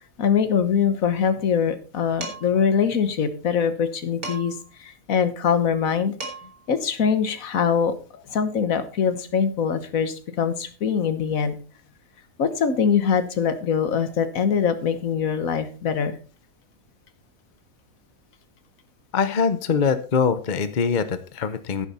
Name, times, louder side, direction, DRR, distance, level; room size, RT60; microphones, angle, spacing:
voice 1, 0.2-6.1 6.7-7.9 8.3-11.6 12.4-16.2, left 7 dB, 60° left, 11 dB, 1.6 m, -23 dB
Dishes pots and pans, 2.2-2.6 4.2-4.7 5.9-6.0 6.2-6.7, right 2 dB, 70° right, 3.5 m, -35 dB
voice 2, 19.1-21.9, left 6 dB, 40° left, 11 dB, 0.7 m, -23 dB
10.5 x 10.5 x 4.2 m, 0.36 s
omnidirectional pair, 1.6 m